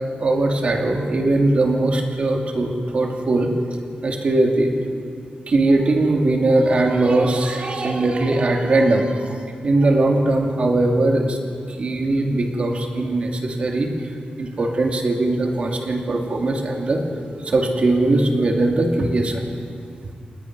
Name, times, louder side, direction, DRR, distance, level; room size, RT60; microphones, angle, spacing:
voice 1, 0.2-3.5 4.0-4.7 5.5-9.4 9.6-11.4 11.7-13.9 14.4-19.5, right 2 dB, 45° right, 2 dB, 2.5 m, -20 dB
28.5 x 19.5 x 6.1 m, 2.3 s
wide cardioid pair, 165°, 3 cm